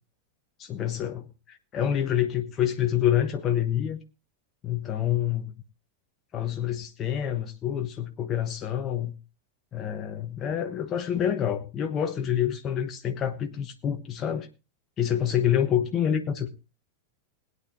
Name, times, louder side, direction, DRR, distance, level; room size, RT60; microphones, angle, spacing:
voice 1, 0.6-4.0 4.6-5.5 6.3-9.1 9.7-14.5 15.0-16.5, left 10 dB, 30° left, 5 dB, 1.1 m, -27 dB
21.0 x 9.5 x 2.7 m, 0.28 s
figure-of-eight pair, 90°, 0 cm